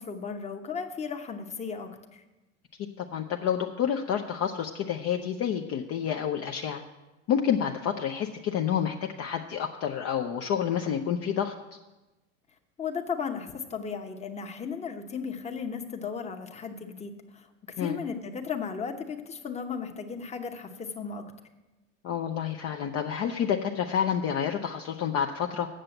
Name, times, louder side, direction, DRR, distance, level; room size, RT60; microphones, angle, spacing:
voice 1, 0.0-2.2 12.8-17.5 17.8-21.2, left 6 dB, 15° left, 5 dB, 0.9 m, -35 dB
voice 2, 3.0-6.8 7.3-11.5 17.8-18.0 22.0-25.7, left 8 dB, 40° left, 4 dB, 0.6 m, -29 dB
7.6 x 6.7 x 7.7 m, 1.1 s
hypercardioid pair, 105°, 38 cm